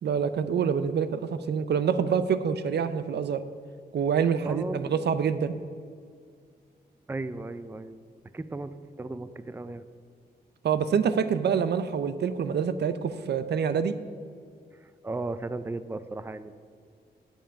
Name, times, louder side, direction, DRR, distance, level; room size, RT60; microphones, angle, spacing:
voice 1, 0.0-3.4 3.9-5.6 10.6-13.9, right 7 dB, 80° right, 12 dB, 0.6 m, -26 dB
voice 2, 4.4-5.1 7.1-8.0 8.3-9.9 14.7-16.5, right 2 dB, 15° right, 13 dB, 0.5 m, -36 dB
9.0 x 7.3 x 8.6 m, 2.1 s
wide cardioid pair, 110°, 17 cm